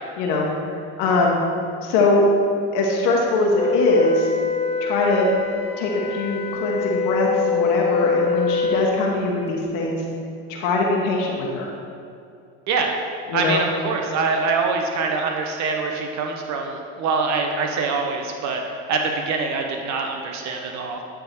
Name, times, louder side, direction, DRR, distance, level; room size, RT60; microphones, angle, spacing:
voice 1, 0.2-1.4 1.8-2.3 2.7-4.3 4.8-5.3 5.8-10.0 10.5-11.7 13.3-13.6, left 3 dB, 75° left, -2 dB, 1.1 m, -22 dB
Wind instrument woodwind instrument, 3.5-9.0, left 4 dB, 20° left, 0.6 m, -24 dB
voice 2, 13.3-18.6 18.9-21.0, right 4 dB, 60° right, 3 dB, 0.9 m, -24 dB
10.5 x 3.8 x 4.4 m, 2.5 s
hypercardioid pair, 75°, 32 cm